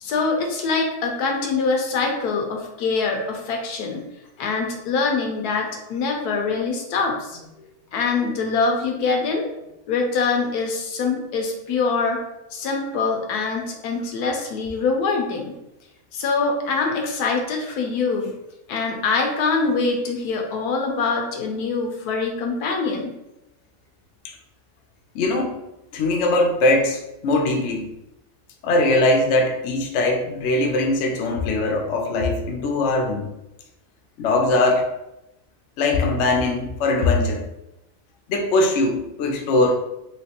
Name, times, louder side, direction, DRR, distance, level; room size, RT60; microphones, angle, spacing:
voice 1, 0.0-4.0 4.4-7.5 7.9-9.5 9.9-12.2 12.5-15.6 16.1-18.3 18.7-23.2, left 4 dB, 80° left, 2 dB, 1.2 m, -24 dB
voice 2, 25.1-25.6 25.9-27.9 28.6-33.3 34.2-34.9 35.8-37.4 38.3-39.8, left 2 dB, 65° left, 2 dB, 0.8 m, -21 dB
3.1 x 2.9 x 2.8 m, 0.88 s
omnidirectional pair, 1.6 m